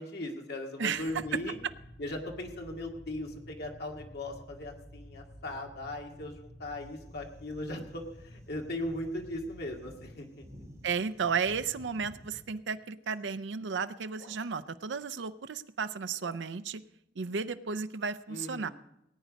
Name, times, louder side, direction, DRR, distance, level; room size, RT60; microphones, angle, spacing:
voice 1, 0.0-1.6 2.0-10.4 18.3-18.7, left 1 dB, 60° left, 1 dB, 2.0 m, -38 dB
sound 1, 1.0-10.2, equal, 30° left, 2.0 m, -52 dB
sound 2, 6.8-12.5, equal, 15° right, 3.4 m, -55 dB
voice 2, 10.8-16.8 17.2-18.7, right 5 dB, 75° right, 11 dB, 0.5 m, -33 dB
sound 3, 11.2-11.5 12.6-13.1 14.1-14.5 15.3-15.6 15.9-16.4, left 2 dB, 80° left, 3.3 m, -54 dB
18.5 x 9.2 x 5.2 m, 0.82 s
head